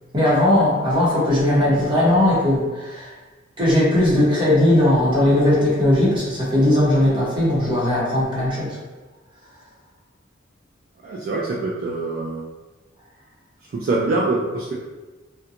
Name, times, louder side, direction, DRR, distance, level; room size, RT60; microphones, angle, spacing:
voice 1, 0.1-3.1 3.6-8.8, left 1 dB, 25° right, -7 dB, 0.9 m, -18 dB
voice 2, 11.0-12.5 13.7-14.7, right 2 dB, 50° right, -4 dB, 0.3 m, -24 dB
2.8 x 2.2 x 2.4 m, 1.2 s
head